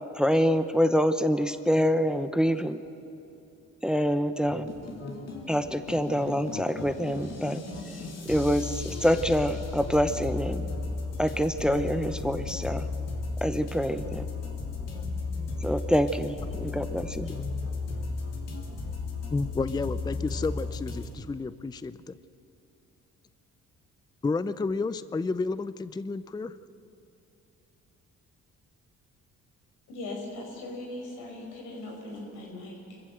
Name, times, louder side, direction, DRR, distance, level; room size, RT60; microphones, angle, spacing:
voice 1, 0.1-2.8 3.8-4.7 5.5-7.6 8.3-10.7 11.2-12.9 13.4-14.2 15.6-17.3, equal, 5° right, 10 dB, 0.8 m, -26 dB
sound 1, 4.5-21.1, left 3 dB, 55° left, 3.4 m, -35 dB
voice 2, 19.3-22.2 24.2-26.6, left 3 dB, 15° left, 15 dB, 0.5 m, -31 dB
voice 3, 29.9-33.0, left 2 dB, 90° left, 0 dB, 5.3 m, -39 dB
24.5 x 15.0 x 7.9 m, 2.8 s
cardioid pair, 90°, 30 cm